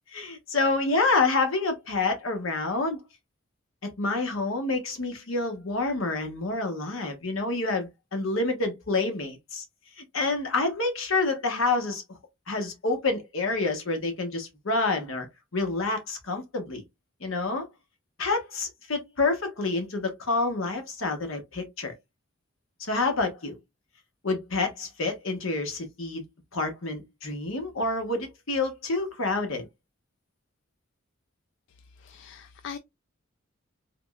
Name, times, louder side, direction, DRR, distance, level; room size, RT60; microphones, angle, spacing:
voice 1, 0.1-3.0 3.8-9.6 10.0-12.0 12.5-15.3 15.5-16.8 17.2-17.7 18.2-21.9 22.9-23.6 24.2-26.2 26.5-29.7, left 3 dB, 80° left, 1.1 m, -28 dB
voice 2, 31.7-32.8, left 6 dB, 60° left, 0.3 m, -42 dB
3.5 x 3.0 x 2.3 m
head